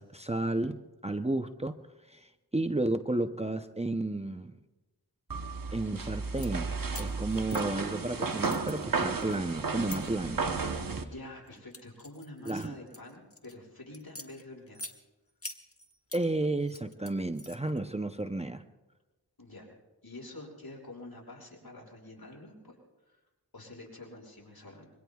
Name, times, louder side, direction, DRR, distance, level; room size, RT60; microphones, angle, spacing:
voice 1, 0.0-1.8 2.1-4.6 5.7-10.6 12.5-12.8 16.1-18.6, right 2 dB, 15° right, 7 dB, 0.7 m, -32 dB
sound 1, 5.3-11.0, right 4 dB, 60° right, 1.0 m, -33 dB
sound 2, 6.2-6.5 6.9-8.1 8.4-10.0 10.7-11.0 11.5-13.5 13.9-15.0 15.4-16.2 16.6-17.8, left 2 dB, 35° left, 1.5 m, -45 dB
voice 2, 11.0-14.9 19.4-19.7 20.0-22.8 23.1-23.2 23.5-24.9, left 2 dB, 70° left, -2 dB, 5.9 m, -47 dB
26.0 x 23.5 x 2.4 m, 1.1 s
wide cardioid pair, 40°, 38 cm